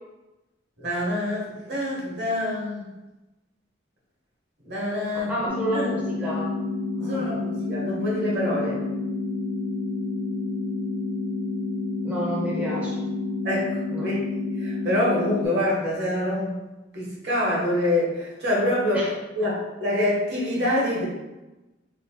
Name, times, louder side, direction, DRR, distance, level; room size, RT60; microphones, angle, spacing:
voice 1, 0.8-2.9 4.7-5.3 5.7-5.9 6.2-6.4 7.1-8.8 13.4-14.2 14.6-16.5 16.9-21.1, left 1 dB, 65° right, -5 dB, 1.3 m, -26 dB
voice 2, 5.3-6.5 7.0-7.4 12.0-13.0 13.9-14.1 18.9-19.1, right 1 dB, 10° right, -6 dB, 0.7 m, -30 dB
sound 1, 5.5-15.5, left 3 dB, 60° left, 0.5 m, -29 dB
3.1 x 2.6 x 4.3 m, 1.1 s
head